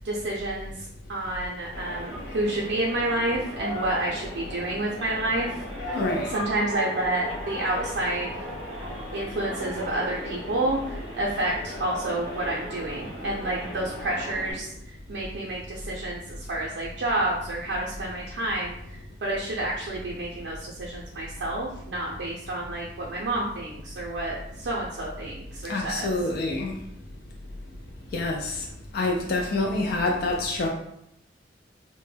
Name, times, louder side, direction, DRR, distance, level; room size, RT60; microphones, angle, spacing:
voice 1, 0.0-6.0 6.3-8.4 9.1-26.1, right 1 dB, 85° right, -5 dB, 0.4 m, -29 dB
sound 1, 1.7-14.5, equal, 90° left, 0.9 m, -37 dB
voice 2, 5.9-6.3 25.7-26.7 28.1-28.6 28.9-30.7, left 2 dB, 55° left, 1 dB, 0.3 m, -26 dB
2.1 x 2.0 x 3.2 m, 0.76 s
head